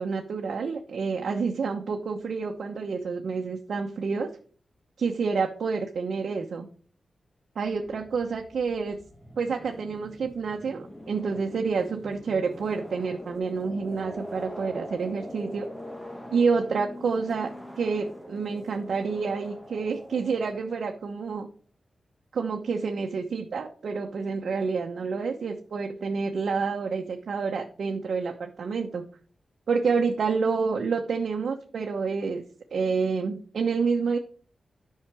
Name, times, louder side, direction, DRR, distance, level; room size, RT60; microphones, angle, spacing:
voice 1, 0.0-4.3 5.0-6.7 7.6-9.0 9.4-15.7 16.3-17.5 17.8-21.5 22.3-29.0 29.7-32.4 32.7-34.2, right 5 dB, 70° right, 1 dB, 1.0 m, -28 dB
sound 1, 7.7-21.1, equal, 10° left, 1.2 m, -43 dB
10.5 x 5.8 x 4.9 m, 0.43 s
wide cardioid pair, 145°, 0 cm